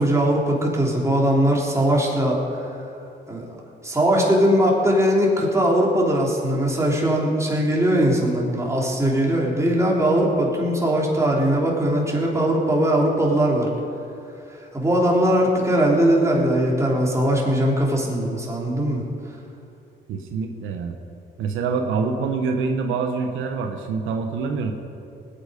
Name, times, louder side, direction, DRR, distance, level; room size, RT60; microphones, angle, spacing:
voice 1, 0.0-2.7 3.3-3.4 3.8-13.7 14.7-19.0, right 1 dB, 15° right, -3 dB, 3.4 m, -20 dB
voice 2, 20.1-21.0 21.4-24.7, right 5 dB, 85° right, 4 dB, 1.2 m, -25 dB
19.5 x 9.0 x 5.3 m, 2.6 s
cardioid pair, 90°, 20 cm